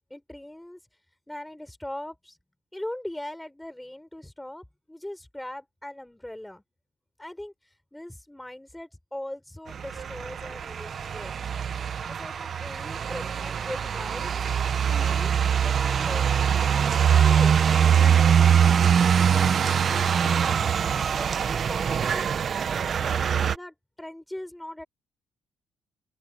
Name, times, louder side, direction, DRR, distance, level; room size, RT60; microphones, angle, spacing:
voice 1, 0.1-0.8 1.3-2.4 2.7-6.6 7.2-11.5 12.1-14.5 14.9-15.3 15.6-17.5 18.0-20.7 21.2-22.5 23.0-24.8, left 1 dB, 5° left, 7.1 m, -40 dB
sound 1, 9.7-23.6, right 8 dB, 50° right, 1.0 m, -23 dB
open air
cardioid pair, 90°, 0 cm